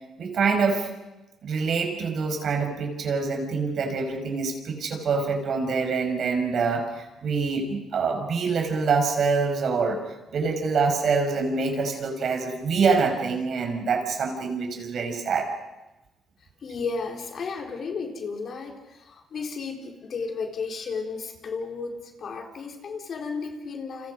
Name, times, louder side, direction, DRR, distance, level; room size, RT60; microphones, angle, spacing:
voice 1, 0.2-0.9 1.4-10.0 10.3-15.5, right 4 dB, 60° right, 4 dB, 5.3 m, -25 dB
voice 2, 16.6-24.1, left 4 dB, 55° left, 2 dB, 4.1 m, -33 dB
29.0 x 27.0 x 5.4 m, 1.0 s
cardioid pair, 90°, 0 cm